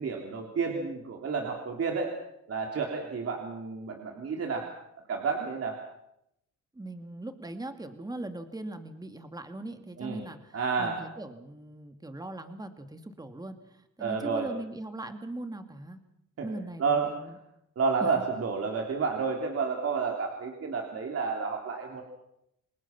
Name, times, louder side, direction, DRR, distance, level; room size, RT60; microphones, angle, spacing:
voice 1, 0.0-2.1 2.5-4.7 5.1-5.8 10.0-10.2 10.5-11.0 14.0-14.5 16.4-16.5 16.8-17.3 17.8-22.0, right 5 dB, 50° right, 1 dB, 3.6 m, -30 dB
voice 2, 6.7-13.6 14.0-16.0 16.4-17.4 18.0-18.2, right 2 dB, 15° right, 7 dB, 2.4 m, -40 dB
28.5 x 20.5 x 6.0 m, 0.80 s
cardioid pair, 90°, 30 cm